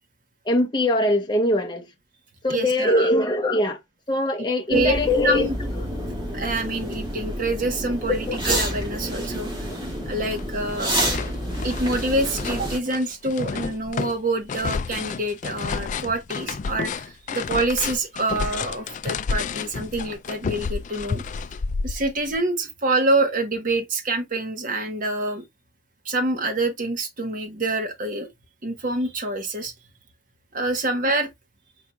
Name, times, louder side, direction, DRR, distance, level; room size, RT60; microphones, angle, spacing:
voice 1, 0.5-1.9 2.4-3.8 4.1-5.5 8.1-8.4 9.6-9.8, left 1 dB, 20° left, 0.9 m, -22 dB
voice 2, 2.5-3.1 4.7-5.6 6.1-9.7 10.0-10.9 11.6-21.2 21.8-25.4 26.0-28.3 28.6-29.7 30.5-31.3, right 2 dB, 45° right, 1.2 m, -26 dB
sound 1, 4.7-12.8, equal, 25° right, 2.1 m, -29 dB
sound 2, 9.2-9.3 9.7-10.4 10.7-22.4, left 5 dB, 40° left, 0.3 m, -31 dB
4.7 x 4.2 x 2.3 m
head